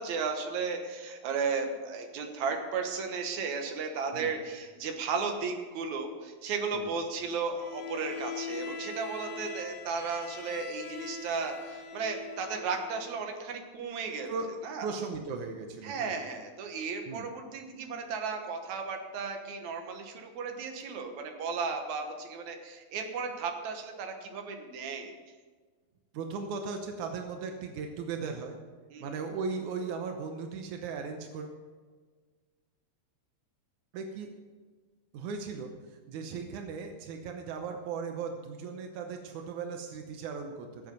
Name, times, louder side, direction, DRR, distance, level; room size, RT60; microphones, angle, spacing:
voice 1, 0.0-14.3 14.6-14.9 15.8-25.1 28.9-29.1, right 5 dB, 65° right, 4 dB, 2.0 m, -35 dB
Bowed string instrument, 7.6-13.2, left 5 dB, 75° left, 1.5 m, -42 dB
voice 2, 14.3-16.1 17.1-17.2 26.1-28.6 29.0-31.6 33.9-34.3 35.1-40.9, right 5 dB, 80° right, 4 dB, 1.7 m, -37 dB
17.5 x 7.9 x 5.4 m, 1.4 s
omnidirectional pair, 4.8 m